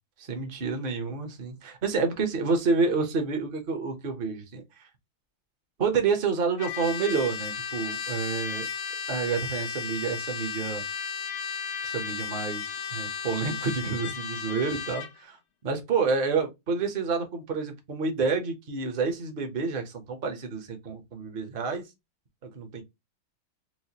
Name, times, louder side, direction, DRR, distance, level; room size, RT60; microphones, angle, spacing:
voice 1, 0.2-4.8 5.8-8.7 9.1-10.8 11.8-15.4 15.6-21.8 22.5-22.8, right 4 dB, 45° right, 0.7 m, -29 dB
Trumpet, 6.6-15.1, left 6 dB, 90° left, 1.7 m, -34 dB
4.7 x 2.1 x 2.8 m
omnidirectional pair, 2.2 m